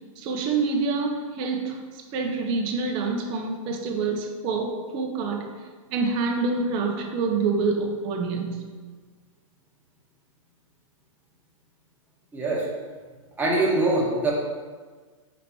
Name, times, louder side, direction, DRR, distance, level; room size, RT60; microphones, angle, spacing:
voice 1, 0.2-5.6 5.9-8.7, right 4 dB, 30° right, 3 dB, 0.8 m, -27 dB
voice 2, 12.3-12.7 13.4-14.3, right 2 dB, 10° right, -5 dB, 1.3 m, -23 dB
5.1 x 4.1 x 4.4 m, 1.4 s
hypercardioid pair, 145°, 17 cm